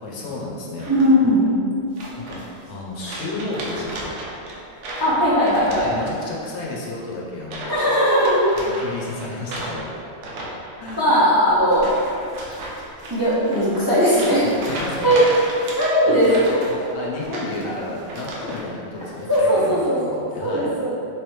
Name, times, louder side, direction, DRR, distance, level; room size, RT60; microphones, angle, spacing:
voice 1, 0.0-0.9 2.2-2.4 2.7-4.1 5.8-7.8 8.6-9.9 10.8-11.1 14.6-15.1 16.1-20.8, left 2 dB, 70° left, -3 dB, 0.9 m, -32 dB
sound 1, 0.8-1.3 2.0-2.7 3.0-6.4 6.7-7.0 7.4-7.9 8.1-18.7 19.0-19.4, right 1 dB, 75° right, 1.0 m, -34 dB
voice 2, 0.9-1.5 5.0-5.9 7.7-8.5 11.0-11.9 13.1-14.4 15.0-15.2 15.8-16.5 17.6-17.8 19.3-20.9, equal, 20° right, -11 dB, 0.6 m, -18 dB
3.2 x 3.2 x 3.0 m, 2.4 s
omnidirectional pair, 1.2 m